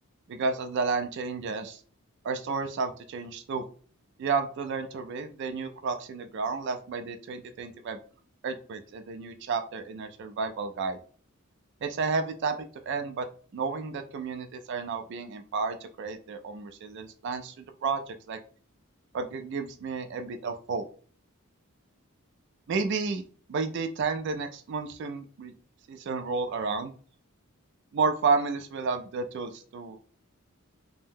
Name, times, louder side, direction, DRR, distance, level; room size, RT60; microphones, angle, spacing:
voice 1, 0.3-1.8 2.2-3.6 4.2-8.0 8.4-11.0 11.8-13.3 13.5-18.4 19.1-20.8 22.7-23.2 23.5-25.5 25.9-26.9 27.9-30.0, right 4 dB, 55° right, 7 dB, 0.3 m, -31 dB
2.7 x 2.1 x 3.5 m, 0.42 s
head